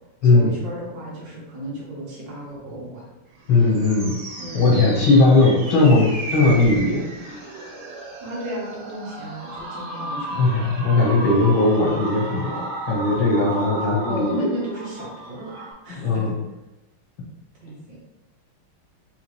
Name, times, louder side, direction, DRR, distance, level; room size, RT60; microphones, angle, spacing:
voice 1, 0.2-3.1 4.4-4.8 8.2-10.5 14.0-16.3 17.6-18.0, right 1 dB, 60° right, -5 dB, 2.0 m, -34 dB
sound 1, 3.3-15.7, right 1 dB, 90° right, 2.3 m, -34 dB
voice 2, 3.5-4.2 4.5-7.0 10.4-14.5 15.9-16.3, left 3 dB, 70° left, -3 dB, 2.0 m, -18 dB
4.1 x 3.9 x 3.2 m, 1.0 s
omnidirectional pair, 2.3 m